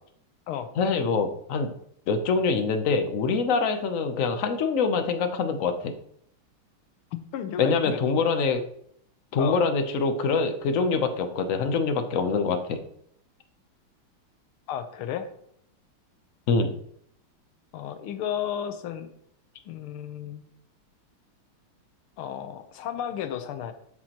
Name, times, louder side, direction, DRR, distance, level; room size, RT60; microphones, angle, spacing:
voice 1, 0.8-1.7 2.1-5.9 7.6-8.6 9.3-12.8 16.5-16.7, left 4 dB, 65° left, 7 dB, 0.8 m, -24 dB
voice 2, 7.3-8.0 9.4-9.6 14.7-15.3 17.7-19.1 19.6-20.4 22.2-23.7, left 9 dB, 85° left, 9 dB, 1.7 m, -33 dB
12.5 x 5.9 x 2.9 m, 0.69 s
omnidirectional pair, 2.3 m